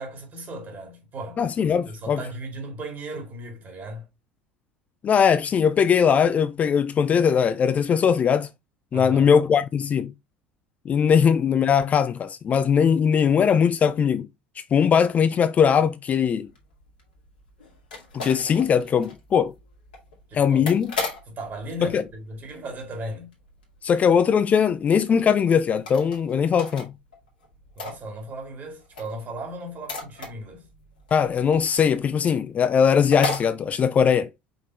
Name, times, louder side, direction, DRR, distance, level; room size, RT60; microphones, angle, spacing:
voice 1, 0.0-1.4 1.9-4.1 8.9-9.3 20.3-20.6 21.2-23.3 27.8-30.7, right 1 dB, 35° right, 2.3 m, -36 dB
voice 2, 1.4-2.2 5.0-8.5 8.9-10.1 10.9-14.3 14.7-16.5 18.1-19.5 20.3-20.9 21.8-22.0 23.8-26.9 31.1-34.3, left 7 dB, 30° left, 0.4 m, -20 dB
sound 1, 16.5-23.1 23.3-23.8 24.0-24.1 24.4-24.5 24.9-25.0 25.7-26.9 27.1-28.5 28.8-32.0 32.4-32.5 32.7-32.8 33.1-33.5, left 3 dB, 70° left, 1.7 m, -35 dB
5.2 x 3.6 x 2.8 m
figure-of-eight pair, 65°, 5 cm